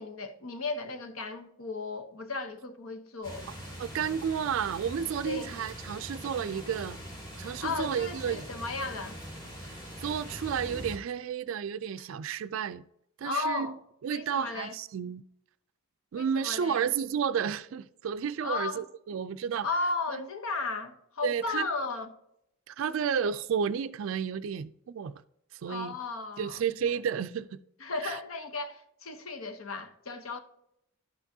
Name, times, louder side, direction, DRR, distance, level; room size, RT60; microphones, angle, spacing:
voice 1, 0.0-3.5 5.3-5.5 7.6-9.2 13.2-13.7 14.1-14.8 16.2-16.9 18.4-18.8 19.6-22.1 25.7-26.6 27.8-30.4, left 3 dB, 75° left, 0.9 m, -35 dB
sound 1, 3.2-11.0, equal, 20° left, 1.9 m, -42 dB
voice 2, 3.8-7.0 7.4-8.5 9.7-12.8 13.2-13.7 14.0-15.2 16.1-19.7 20.1-20.3 21.2-21.7 22.7-25.2 25.5-25.9 26.4-27.6 28.0-28.2, right 7 dB, 70° right, 0.3 m, -32 dB
11.5 x 5.9 x 2.7 m
head